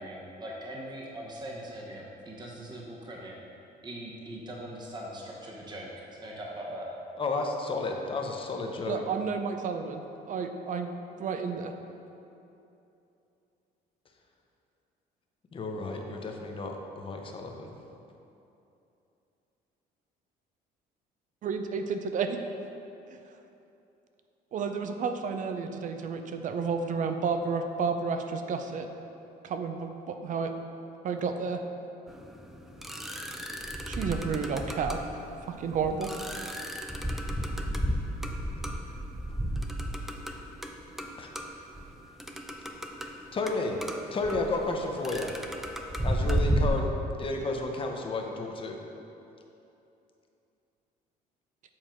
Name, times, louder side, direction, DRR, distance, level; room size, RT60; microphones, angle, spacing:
voice 1, 0.0-3.4 3.8-6.9, right 1 dB, 25° right, -2 dB, 1.0 m, -41 dB
voice 2, 7.2-9.0 15.5-17.7 41.2-41.3 43.3-43.8 44.1-45.3 46.0-48.8, left 3 dB, 30° left, 2 dB, 0.8 m, -32 dB
voice 3, 8.9-10.9 11.2-11.7 21.4-22.4 24.5-28.9 29.4-30.5 31.0-31.6 33.9-35.0 35.5-36.1, right 5 dB, 50° right, 7 dB, 0.5 m, -31 dB
sound 1, 32.1-46.7, equal, ahead, 0.5 m, -33 dB
7.5 x 4.4 x 4.4 m, 2.8 s
cardioid pair, 110°, 17 cm